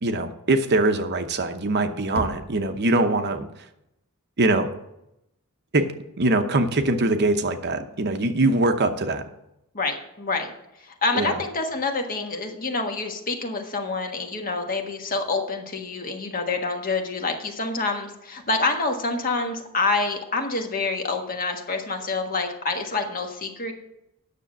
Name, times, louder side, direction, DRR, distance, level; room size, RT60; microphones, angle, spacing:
voice 1, 0.0-3.5 4.4-4.7 5.7-5.9 6.2-9.2 11.1-11.4, right 2 dB, 50° right, 7 dB, 0.9 m, -22 dB
Knock, 2.2-3.1, right 1 dB, 25° right, 0.9 m, -36 dB
voice 2, 9.7-10.5 10.8-23.7, left 3 dB, 40° left, 3 dB, 1.5 m, -27 dB
9.7 x 6.8 x 6.2 m, 0.84 s
head